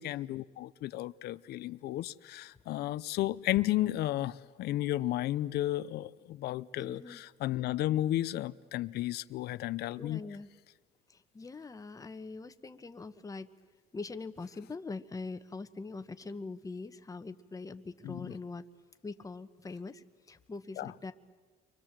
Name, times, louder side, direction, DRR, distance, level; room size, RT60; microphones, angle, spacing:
voice 1, 0.0-10.2 18.0-18.3 20.8-21.1, left 14 dB, 75° left, 15 dB, 0.7 m, -33 dB
voice 2, 6.8-7.2 10.0-10.5 11.1-13.5 13.9-18.6 19.0-21.1, left 3 dB, 20° left, 9 dB, 1.2 m, -43 dB
30.0 x 24.0 x 7.5 m, 1.4 s
cardioid pair, 110°, 17 cm